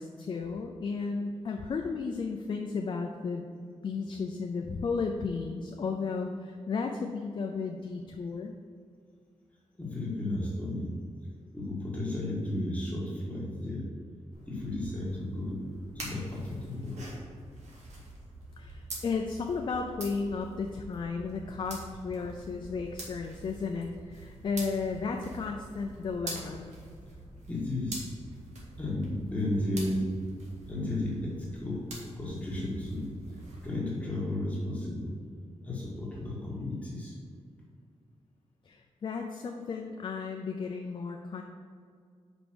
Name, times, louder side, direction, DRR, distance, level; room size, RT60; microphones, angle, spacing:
voice 1, 0.0-3.5 3.8-8.5 18.6-26.7 38.6-41.4, left 4 dB, 45° left, 3 dB, 0.4 m, -34 dB
voice 2, 9.8-10.9 11.5-13.8 14.5-15.6 15.9-17.1 27.5-28.0 28.8-30.0 30.6-31.8 32.1-33.1 33.6-35.2 35.6-37.1, left 1 dB, 10° left, -5 dB, 1.5 m, -33 dB
sound 1, 14.3-33.8, right 2 dB, 80° right, 1.8 m, -46 dB
5.3 x 5.0 x 6.0 m, 2.2 s
wide cardioid pair, 175°, 12 cm